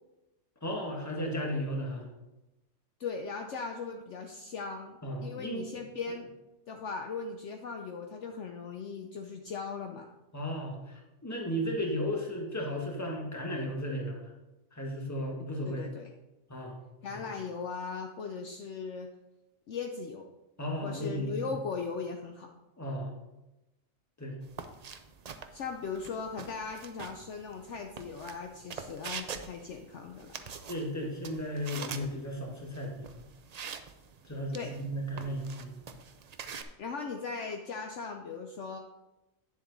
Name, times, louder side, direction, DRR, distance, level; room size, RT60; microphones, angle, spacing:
voice 1, 0.6-2.0 5.0-5.7 10.3-14.2 14.7-15.8 16.5-16.8 17.1-17.2 20.6-21.3 22.8-23.1 24.2-24.3 30.7-33.2 34.3-35.7, equal, 10° left, 0 dB, 1.5 m, -35 dB
voice 2, 3.0-6.3 6.7-10.1 15.6-16.1 17.0-19.1 19.7-20.3 20.8-22.5 25.5-30.5 34.5-34.7 36.8-38.8, left 5 dB, 60° left, 4 dB, 0.9 m, -38 dB
sound 1, 24.4-36.6, right 6 dB, 80° right, 0.3 m, -45 dB
9.4 x 7.3 x 3.9 m, 0.99 s
omnidirectional pair, 1.5 m